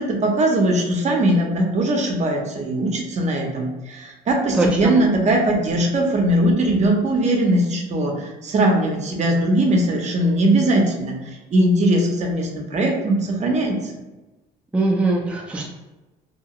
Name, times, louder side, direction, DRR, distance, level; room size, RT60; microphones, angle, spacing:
voice 1, 0.0-13.8, right 1 dB, 45° right, 1 dB, 0.7 m, -20 dB
voice 2, 4.6-4.9 14.7-15.7, right 2 dB, 5° right, -3 dB, 0.4 m, -21 dB
2.8 x 2.3 x 2.9 m, 1.1 s
cardioid pair, 110°, 17 cm